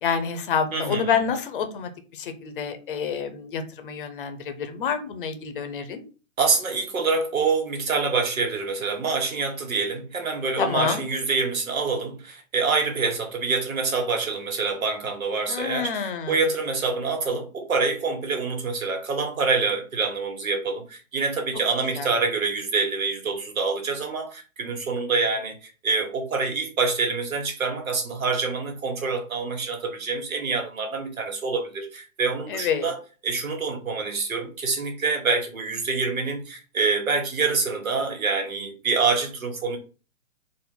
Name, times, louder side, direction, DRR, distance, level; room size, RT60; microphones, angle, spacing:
voice 1, 0.0-6.0 10.6-11.0 15.5-16.4 21.9-22.1 32.5-32.9, left 6 dB, 40° left, 0.7 m, -28 dB
voice 2, 0.7-1.2 6.4-39.8, right 4 dB, 80° right, 1.7 m, -26 dB
4.2 x 2.5 x 3.8 m
hypercardioid pair, 145°, 41 cm